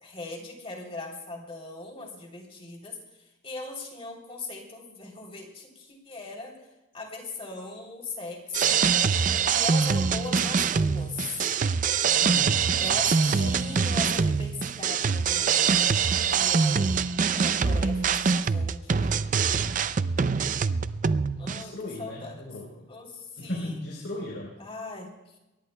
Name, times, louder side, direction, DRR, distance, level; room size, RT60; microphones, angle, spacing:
voice 1, 0.0-3.0 3.4-6.6 6.9-8.8 9.2-11.5 12.8-16.0 16.3-19.2 21.4-22.4 22.9-23.8 24.6-25.1, left 3 dB, 30° left, 0 dB, 3.2 m, -39 dB
sound 1, 8.5-21.6, right 6 dB, 40° right, 0.4 m, -24 dB
voice 2, 12.0-14.1 21.5-22.9 23.4-24.6, left 1 dB, 70° left, -3 dB, 3.9 m, -38 dB
22.5 x 19.0 x 2.2 m, 0.98 s
head